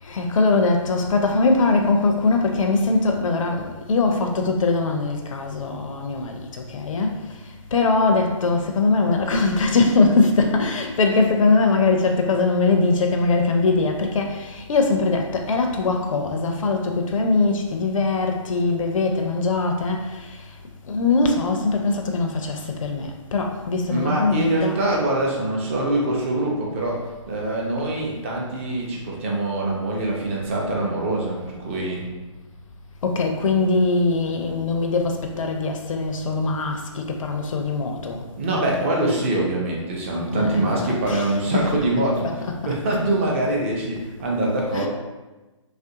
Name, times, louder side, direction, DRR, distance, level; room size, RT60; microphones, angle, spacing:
voice 1, 0.0-20.6 20.8-24.8 33.0-38.3 40.3-42.8 44.7-44.9, left 3 dB, 75° left, 3 dB, 0.5 m, -22 dB
voice 2, 23.9-27.0 27.3-32.0 38.4-42.2 42.7-44.9, right 1 dB, 25° right, -2 dB, 0.5 m, -24 dB
3.1 x 2.4 x 2.7 m, 1.1 s
hypercardioid pair, 160°, 17 cm